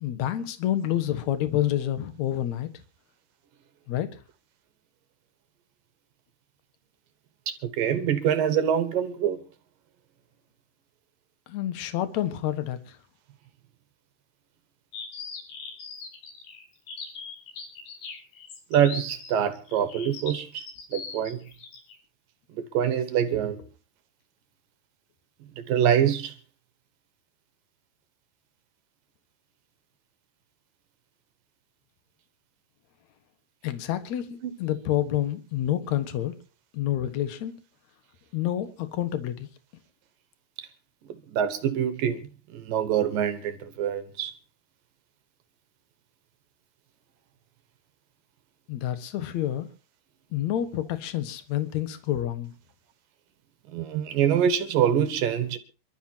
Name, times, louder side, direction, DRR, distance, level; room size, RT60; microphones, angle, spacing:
voice 1, 0.0-2.7 3.9-4.1 11.5-12.8 33.6-36.4 36.7-37.5 38.3-39.5 48.7-49.7 50.3-52.5, left 12 dB, 60° left, 2.1 m, -28 dB
voice 2, 7.5-9.4 18.7-20.6 20.9-21.4 22.5-23.6 25.7-26.3 34.4-34.5 41.3-42.2 42.5-44.3 53.7-55.6, right 9 dB, 65° right, 2.5 m, -25 dB
sound 1, 14.9-22.0, left 5 dB, 75° left, 4.9 m, -40 dB
28.5 x 12.5 x 2.8 m
omnidirectional pair, 4.8 m